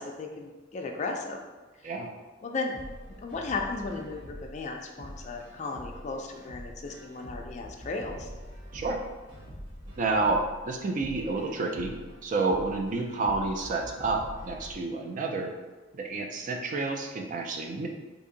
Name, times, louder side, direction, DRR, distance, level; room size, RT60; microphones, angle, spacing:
voice 1, 0.0-1.4 2.4-2.7 3.2-8.3, left 3 dB, 35° left, 2 dB, 0.3 m, -35 dB
sound 1, 2.7-14.7, equal, 70° right, 1.2 m, -45 dB
voice 2, 10.0-11.9 12.2-15.5 15.9-17.9, right 3 dB, 40° right, 3 dB, 0.3 m, -29 dB
2.8 x 2.6 x 3.8 m, 1.2 s
head